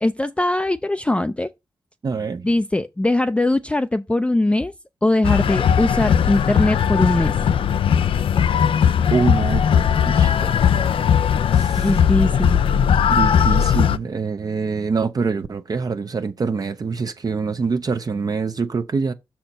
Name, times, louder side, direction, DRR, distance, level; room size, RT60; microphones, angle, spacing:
voice 1, 0.0-1.5 2.4-4.7 5.0-7.3 11.8-12.6, left 1 dB, 15° left, 0.4 m, -21 dB
voice 2, 2.0-2.5 9.1-10.9 11.5-11.9 13.1-19.1, right 4 dB, 45° right, 0.6 m, -25 dB
sound 1, 5.2-14.0, left 8 dB, 85° left, 0.4 m, -18 dB
6.3 x 4.4 x 5.4 m
wide cardioid pair, 100°, 9 cm